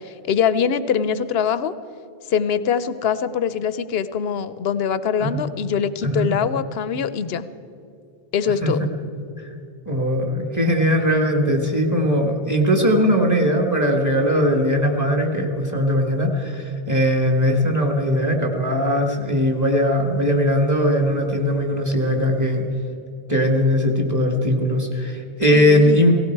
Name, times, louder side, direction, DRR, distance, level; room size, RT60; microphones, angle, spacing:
voice 1, 0.0-1.7 2.3-7.5 8.3-8.8 25.5-26.0, left 7 dB, 80° left, 13 dB, 0.9 m, -23 dB
voice 2, 9.8-22.6 23.3-26.1, equal, 15° right, 2 dB, 1.7 m, -19 dB
17.5 x 16.5 x 4.6 m, 2.6 s
omnidirectional pair, 1.0 m